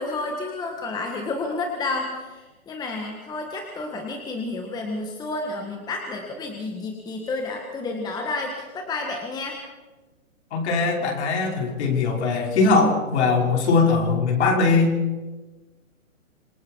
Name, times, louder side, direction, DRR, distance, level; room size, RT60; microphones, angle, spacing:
voice 1, 0.0-9.6, left 3 dB, 10° left, 2 dB, 1.7 m, -30 dB
voice 2, 10.5-15.0, left 4 dB, 50° left, 1 dB, 5.5 m, -20 dB
26.5 x 21.0 x 4.7 m, 1.2 s
hypercardioid pair, 150°, 42 cm